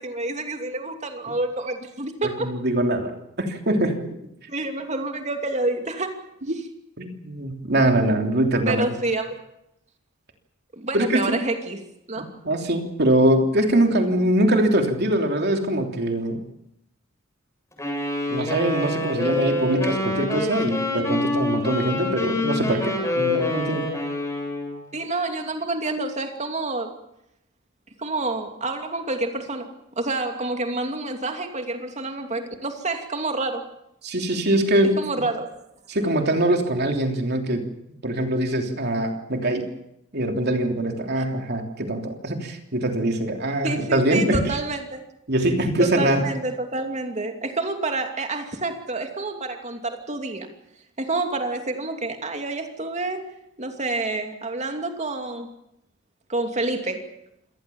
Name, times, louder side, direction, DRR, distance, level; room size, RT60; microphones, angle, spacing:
voice 1, 0.0-2.5 4.5-6.2 8.7-9.3 10.7-11.8 12.1-12.3 24.9-26.9 28.0-29.7 30.0-33.7 35.0-35.6 41.2-41.3 43.6-45.0 45.8-50.5 51.0-55.5 56.3-57.1, right 2 dB, 35° right, 5 dB, 2.7 m, -28 dB
voice 2, 2.4-4.0 7.0-8.8 10.9-11.4 12.2-16.4 18.3-24.0 34.0-35.0 35.9-37.6 38.0-39.7 40.1-44.4 45.3-46.2, right 1 dB, 55° right, 4 dB, 3.3 m, -23 dB
Wind instrument woodwind instrument, 17.8-24.8, left 2 dB, 15° left, 7.9 m, -26 dB
26.5 x 19.0 x 7.2 m, 0.81 s
head